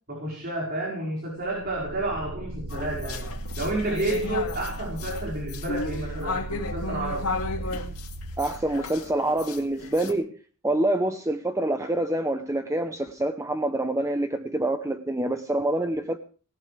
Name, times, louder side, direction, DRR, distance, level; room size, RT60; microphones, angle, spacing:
voice 1, 0.1-3.3 3.6-7.3, right 1 dB, 45° right, -2 dB, 5.0 m, -30 dB
sound 1, 1.4-9.1, right 2 dB, 80° right, 1.2 m, -37 dB
sound 2, 2.7-10.1, left 3 dB, 75° left, 2.4 m, -34 dB
voice 2, 8.4-10.4 10.6-16.2, right 1 dB, 15° right, 7 dB, 0.8 m, -26 dB
18.5 x 18.0 x 3.4 m, 0.40 s
head